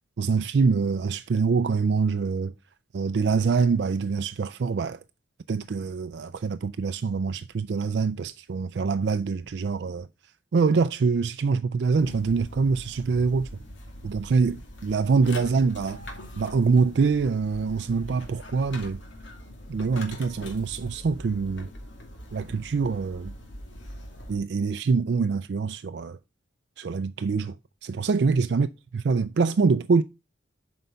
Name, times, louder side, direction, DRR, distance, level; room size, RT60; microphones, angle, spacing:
voice 1, 0.2-2.5 2.9-5.0 5.5-10.1 10.5-13.6 14.0-16.0 16.4-19.0 19.7-21.7 22.3-23.3 24.3-26.2 26.8-27.6 27.8-28.7 29.1-30.0, right 4 dB, 60° right, 0.4 m, -24 dB
sound 1, 11.9-24.4, left 1 dB, 70° left, 2.5 m, -42 dB
7.9 x 5.3 x 5.5 m
head